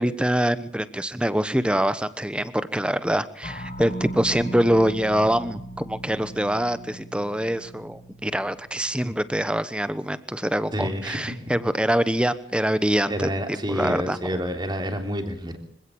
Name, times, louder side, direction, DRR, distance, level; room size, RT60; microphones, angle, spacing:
voice 1, 0.0-13.3 13.7-14.4, equal, 5° right, 13 dB, 1.1 m, -24 dB
sound 1, 3.4-9.8, right 1 dB, 40° left, 1.6 m, -39 dB
voice 2, 10.7-11.3 13.1-15.6, equal, 20° right, 5 dB, 3.4 m, -28 dB
25.5 x 16.5 x 8.7 m, 0.63 s
head